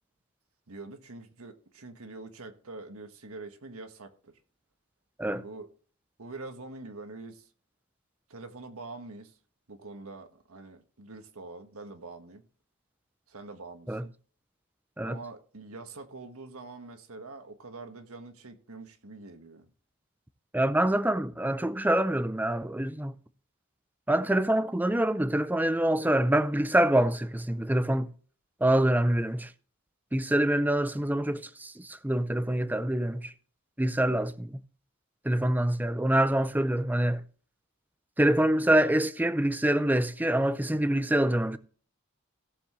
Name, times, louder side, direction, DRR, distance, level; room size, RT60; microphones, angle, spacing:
voice 1, 0.7-4.4 5.2-5.7 6.2-7.5 8.3-9.4 9.7-12.4 13.3-14.1 15.0-19.7 34.0-34.2, right 3 dB, 80° right, 1.5 m, -45 dB
voice 2, 20.5-23.1 24.1-28.1 28.6-29.5 30.1-33.3 33.8-34.6 35.2-37.2 38.2-41.6, right 1 dB, 10° right, 0.5 m, -25 dB
17.0 x 7.1 x 3.1 m
head